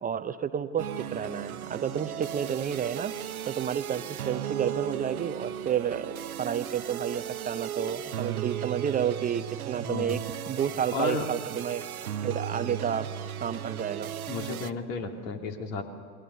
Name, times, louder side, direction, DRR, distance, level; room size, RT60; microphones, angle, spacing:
voice 1, 0.0-3.1 3.5-11.8 12.2-13.1 13.4-14.1, right 8 dB, 20° right, 11 dB, 0.7 m, -31 dB
sound 1, 0.8-14.7, right 10 dB, 80° right, 0.9 m, -36 dB
voice 2, 9.8-10.2 10.9-11.3 14.3-15.8, left 4 dB, 60° left, 4 dB, 2.9 m, -33 dB
28.0 x 22.0 x 6.9 m, 2.3 s
figure-of-eight pair, 80°, 43 cm